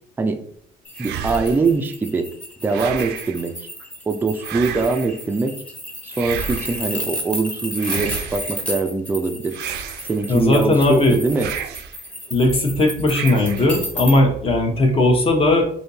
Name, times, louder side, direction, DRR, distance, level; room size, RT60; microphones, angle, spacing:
sound 1, 0.8-14.2, equal, 5° left, 1.0 m, -33 dB
voice 1, 1.0-2.3 2.6-3.7 4.1-5.5 6.0-9.6 10.0-11.5, right 3 dB, 10° right, 5 dB, 0.4 m, -22 dB
sound 2, 1.0-1.8 2.7-3.4 4.4-5.2 6.1-6.9 7.8-8.6 9.5-10.4 11.3-12.0 13.1-13.8, right 8 dB, 80° right, 0.4 m, -31 dB
voice 2, 10.3-11.2 12.3-15.6, left 2 dB, 35° left, 3 dB, 0.9 m, -17 dB
3.5 x 2.7 x 2.7 m, 0.62 s
cardioid pair, 110°, 17 cm